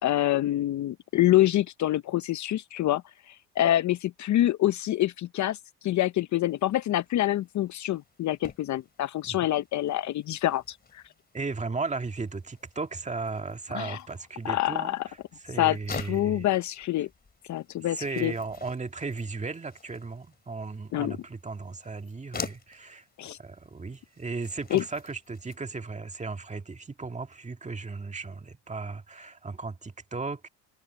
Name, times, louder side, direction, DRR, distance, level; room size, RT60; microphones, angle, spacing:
voice 1, 0.0-3.0 3.3-5.6 5.8-11.0 13.7-14.0 14.4-15.0 15.6-17.1 17.5-18.3 20.9-21.2 23.2-23.4 24.7-24.8, left 14 dB, 45° left, 0.8 m, -26 dB
sound 1, 6.5-25.6, left 5 dB, 25° left, 3.6 m, -47 dB
voice 2, 11.3-15.2 15.4-16.5 17.9-30.5, right 4 dB, 20° right, 2.0 m, -36 dB
supercardioid pair, 95°, 39 cm